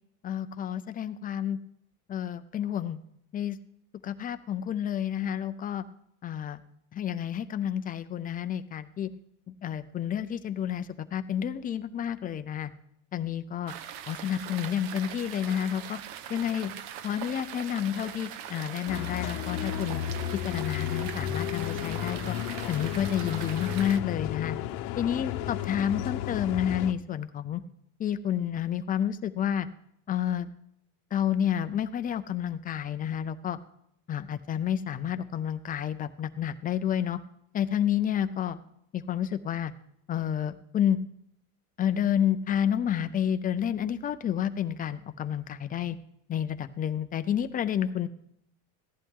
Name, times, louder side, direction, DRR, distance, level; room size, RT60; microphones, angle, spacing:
voice 1, 0.2-1.6 2.1-3.0 3.3-3.6 4.0-5.8 6.2-6.6 6.9-9.1 9.6-12.7 13.1-13.7 14.1-16.0 16.3-16.7 17.0-20.0 20.4-22.4 22.7-24.6 25.0-27.6 28.0-29.7 30.1-30.5 31.1-33.6 34.1-37.2 37.5-38.6 38.9-39.7 40.1-41.0 41.8-46.0 46.3-48.1, left 9 dB, 20° left, 10 dB, 0.4 m, -30 dB
sound 1, 13.7-24.0, right 10 dB, 70° right, 0.9 m, -41 dB
sound 2, 18.9-26.9, left 12 dB, 85° left, 0.8 m, -33 dB
15.0 x 11.0 x 3.6 m, 0.72 s
cardioid pair, 150°, 44 cm